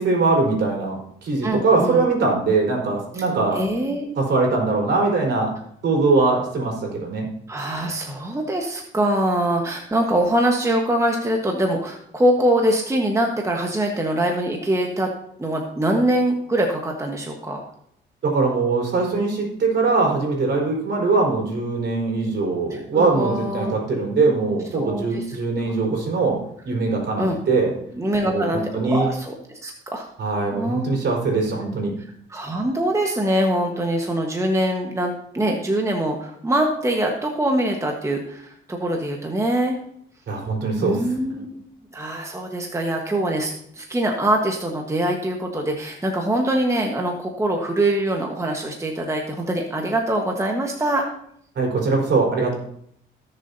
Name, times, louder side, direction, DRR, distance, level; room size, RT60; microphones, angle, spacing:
voice 1, 0.0-3.6 4.2-5.5 5.8-7.2 18.2-26.4 26.6-27.7 28.3-29.1 30.2-31.9 40.3-41.1 51.6-52.5, right 3 dB, 60° right, -1 dB, 4.3 m, -21 dB
voice 2, 1.4-2.1 3.5-4.1 7.5-15.1 15.4-17.6 22.7-23.9 24.7-25.4 25.6-25.7 27.2-27.4 27.9-30.1 30.5-30.9 32.3-39.8 40.8-51.0, right 1 dB, 15° right, 1 dB, 1.3 m, -23 dB
17.5 x 6.8 x 2.8 m, 0.69 s
cardioid pair, 90°, 20 cm